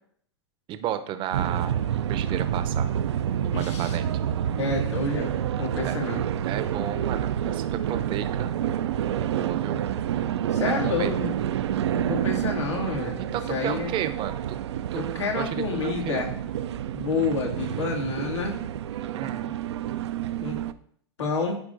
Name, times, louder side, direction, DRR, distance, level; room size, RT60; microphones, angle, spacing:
voice 1, 0.7-2.9 3.4-4.1 5.8-6.0 6.4-8.5 9.2-9.8 10.6-11.1 13.3-14.6 14.9-16.3 19.1-19.5, right 10 dB, 35° right, 10 dB, 0.7 m, -33 dB
sound 1, 1.3-20.7, right 10 dB, 75° right, 0.4 m, -28 dB
voice 2, 3.5-4.0 4.6-6.2 10.5-11.4 11.9-13.9 14.9-16.3 16.9-18.6 20.4-20.6 21.2-21.6, left 3 dB, 85° left, -1 dB, 2.1 m, -29 dB
13.0 x 4.4 x 2.6 m, 0.64 s
hypercardioid pair, 105°, 14 cm